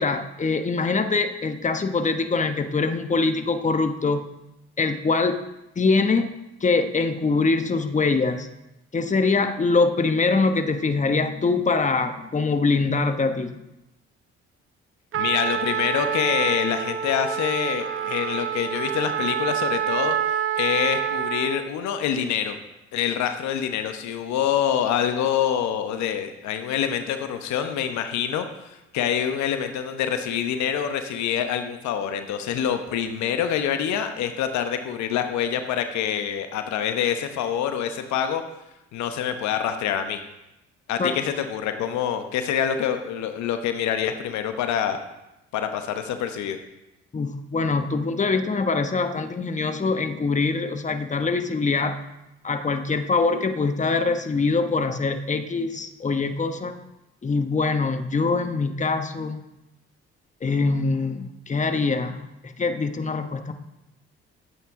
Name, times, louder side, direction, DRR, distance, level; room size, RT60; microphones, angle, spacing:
voice 1, 0.0-4.3 4.8-5.4 5.8-6.3 6.6-8.5 8.9-13.5 41.0-41.2 47.1-52.0 52.4-56.8 57.2-59.4 60.4-63.5, left 4 dB, 25° left, 8 dB, 1.0 m, -23 dB
voice 2, 15.1-22.6 22.9-38.4 38.9-40.2 40.9-45.0 45.5-46.6, left 9 dB, 70° left, 8 dB, 1.0 m, -26 dB
Trumpet, 15.1-21.7, right 9 dB, 45° right, 0.7 m, -27 dB
12.5 x 8.2 x 3.7 m, 0.94 s
hypercardioid pair, 55°, 29 cm